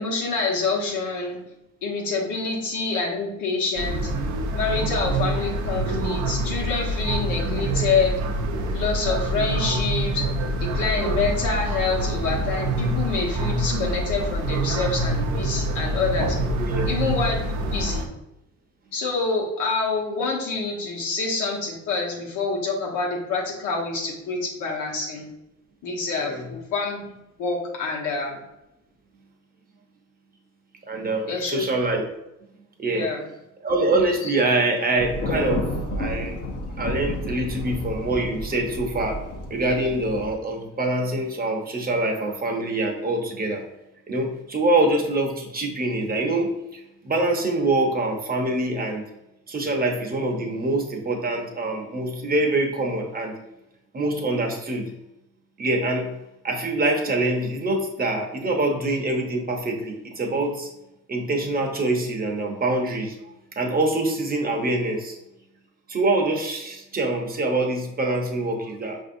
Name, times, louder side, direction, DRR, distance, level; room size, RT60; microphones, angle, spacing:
voice 1, 0.0-1.4 1.8-4.1 4.5-8.2 8.7-10.2 10.6-16.4 16.9-18.1 18.9-25.3 25.8-28.4 31.3-31.6 32.9-33.2 34.2-34.3, left 4 dB, 90° left, -2 dB, 1.1 m, -27 dB
sound 1, 3.8-18.1, right 1 dB, 80° right, 0.6 m, -26 dB
voice 2, 30.9-32.0 32.8-33.1 33.6-36.4 36.8-39.2 39.5-43.6 44.1-49.0 49.5-53.3 53.9-54.9 55.6-56.1 56.4-60.7 61.1-65.2 65.9-69.0, right 2 dB, 30° right, 1 dB, 0.8 m, -25 dB
Thunder, 35.0-40.3, left 1 dB, 50° left, 0.8 m, -31 dB
5.1 x 2.7 x 2.6 m, 0.90 s
cardioid pair, 90°, 30 cm